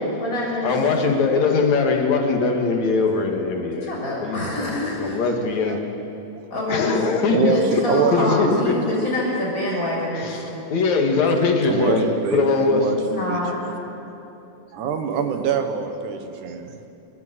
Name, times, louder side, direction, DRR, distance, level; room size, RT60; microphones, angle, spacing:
voice 1, 0.1-0.7 3.8-5.3 6.5-7.0 7.5-10.6 12.9-13.6, left 1 dB, 25° left, -5 dB, 6.9 m, -26 dB
voice 2, 0.6-3.9 4.2-4.4 5.0-5.8 6.7-7.5 8.1-8.7 10.2-12.8, left 4 dB, 65° left, 3 dB, 3.1 m, -21 dB
voice 3, 7.3-8.9 9.9-10.0 11.7-13.4 14.8-16.9, right 6 dB, 80° right, 7 dB, 2.8 m, -25 dB
29.5 x 12.5 x 8.0 m, 2.9 s
omnidirectional pair, 3.6 m